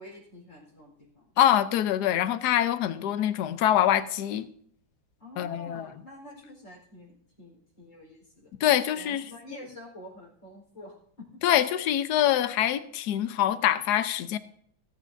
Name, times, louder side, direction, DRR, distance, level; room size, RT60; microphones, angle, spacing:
voice 1, 0.0-1.3 5.2-8.5 8.9-11.4, left 1 dB, 35° left, -1 dB, 4.6 m, -48 dB
voice 2, 1.4-4.4 5.4-5.9 8.6-9.2 11.4-14.4, left 11 dB, 65° left, 12 dB, 1.1 m, -24 dB
20.0 x 10.0 x 2.6 m, 0.65 s
omnidirectional pair, 2.3 m